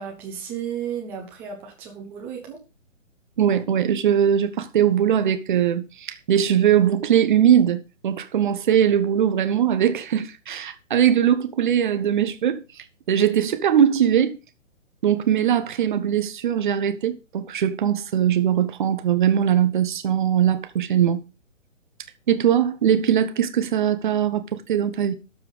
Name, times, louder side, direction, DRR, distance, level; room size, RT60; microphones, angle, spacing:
voice 1, 0.0-2.6, right 8 dB, 5° right, 0.5 m, -33 dB
voice 2, 3.4-12.6 13.1-14.4 15.0-21.2 22.3-25.1, right 9 dB, 40° right, 1.2 m, -20 dB
12.5 x 5.9 x 5.1 m
figure-of-eight pair, 135°, 39 cm